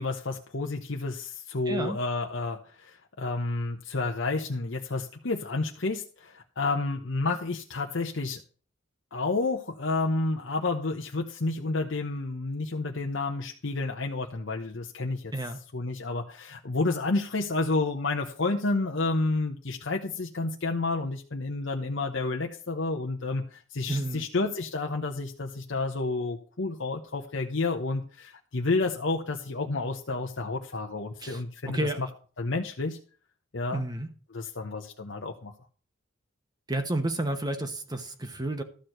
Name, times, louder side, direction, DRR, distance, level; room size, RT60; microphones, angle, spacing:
voice 1, 0.0-8.4 9.1-15.3 15.7-32.1 32.4-33.0 33.5-33.8 34.3-35.5, left 3 dB, 65° left, 0.9 m, -30 dB
voice 2, 1.7-2.0 15.3-15.6 23.9-24.3 31.2-31.4 31.7-32.0 33.7-34.1 36.7-38.6, right 1 dB, 20° right, 1.0 m, -30 dB
13.0 x 4.5 x 7.8 m
head